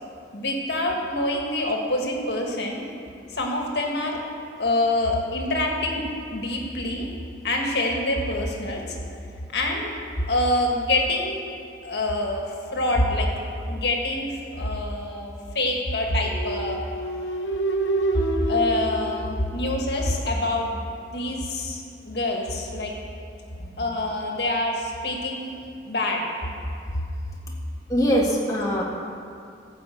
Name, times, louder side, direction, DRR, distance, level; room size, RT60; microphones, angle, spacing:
voice 1, 0.3-2.8 3.3-4.2 4.6-6.0 6.3-7.1 7.4-8.9 9.5-9.9 10.3-11.5 11.8-13.3 13.7-16.8 18.5-22.9 23.8-25.5 25.8-26.2, left 1 dB, 65° left, 0 dB, 1.8 m, -26 dB
sound 1, 16.2-20.1, right 2 dB, 80° left, 0.9 m, -28 dB
voice 2, 23.6-24.0 27.9-28.8, equal, 20° left, -4 dB, 1.8 m, -23 dB
14.5 x 5.0 x 7.9 m, 2.5 s
head